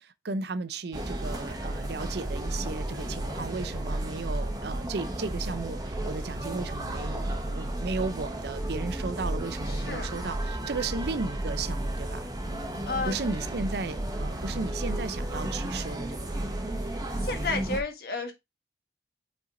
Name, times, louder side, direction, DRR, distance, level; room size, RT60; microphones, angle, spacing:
voice 1, 0.0-12.3 13.1-16.4, right 3 dB, 60° right, 0.5 m, -35 dB
sound 1, 0.9-17.8, right 1 dB, 20° right, 1.0 m, -33 dB
voice 2, 2.9-3.3 7.5-7.6 9.7-10.1 12.9-13.1 17.2-18.3, left 3 dB, 55° left, 1.4 m, -33 dB
5.7 x 4.4 x 3.7 m
head